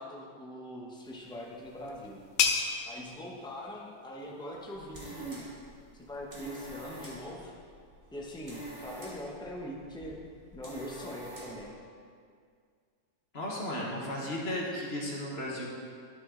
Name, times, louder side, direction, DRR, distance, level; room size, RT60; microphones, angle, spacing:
voice 1, 0.0-2.2 2.9-5.5 6.0-7.5 8.1-10.2 10.5-11.7, equal, 5° left, -2 dB, 0.3 m, -42 dB
sound 1, 1.0-6.5, left 6 dB, 65° left, 0.7 m, -36 dB
sound 2, 4.6-11.7, right 1 dB, 30° right, 1.6 m, -47 dB
voice 2, 13.3-15.6, left 1 dB, 40° left, -3 dB, 1.4 m, -34 dB
11.0 x 6.3 x 3.7 m, 2.1 s
omnidirectional pair, 2.0 m